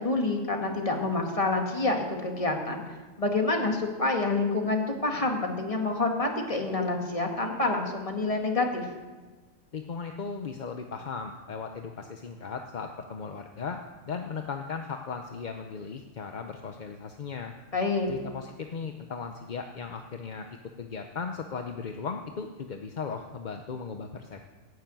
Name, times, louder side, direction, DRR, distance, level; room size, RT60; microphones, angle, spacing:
voice 1, 0.0-2.8 3.2-8.9 17.7-18.1, left 3 dB, 25° left, 2 dB, 1.9 m, -27 dB
voice 2, 9.7-13.8 14.1-17.5 18.1-24.4, left 5 dB, 45° left, 5 dB, 0.7 m, -37 dB
15.5 x 7.1 x 9.1 m, 1.3 s
omnidirectional pair, 1.4 m